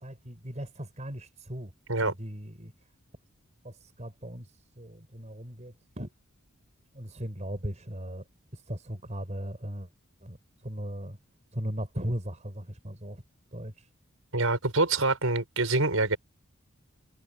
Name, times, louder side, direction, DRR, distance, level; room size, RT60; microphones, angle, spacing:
voice 1, 0.0-1.7 2.0-2.7 3.6-4.5 4.8-6.1 6.9-8.2 8.5-9.9 10.2-10.4 10.6-11.2 11.5-13.2 13.5-13.7, equal, 35° right, 4.7 m, -37 dB
voice 2, 14.3-16.2, right 3 dB, 80° right, 5.7 m, -25 dB
head